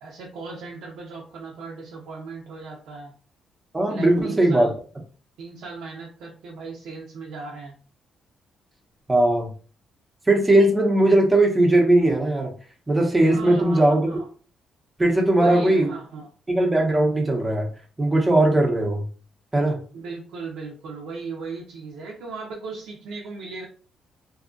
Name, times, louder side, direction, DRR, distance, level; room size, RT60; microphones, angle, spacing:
voice 1, 0.0-3.1 3.9-4.7 5.4-7.8 13.2-14.3 15.3-16.3 19.9-23.7, right 4 dB, 85° right, -2 dB, 0.6 m, -37 dB
voice 2, 3.7-4.7 9.1-9.5 10.3-12.5 12.9-14.1 15.0-15.9 16.5-17.7 18.0-19.0 19.5-19.8, right 1 dB, 15° right, 1 dB, 0.8 m, -19 dB
2.7 x 2.4 x 2.5 m, 0.40 s
cardioid pair, 90°, 0 cm